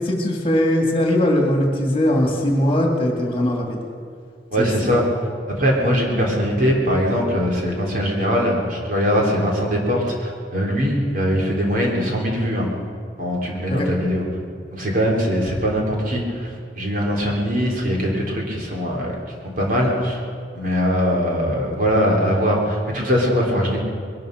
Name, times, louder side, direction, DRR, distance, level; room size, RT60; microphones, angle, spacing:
voice 1, 0.0-3.8 4.6-5.0 13.7-13.9, left 1 dB, 30° left, 1 dB, 2.4 m, -20 dB
voice 2, 4.5-5.0 5.6-12.7 13.2-14.2 14.7-19.1 19.4-20.2 20.5-23.8, equal, 50° right, -1 dB, 3.3 m, -21 dB
21.5 x 12.5 x 5.2 m, 2.2 s
head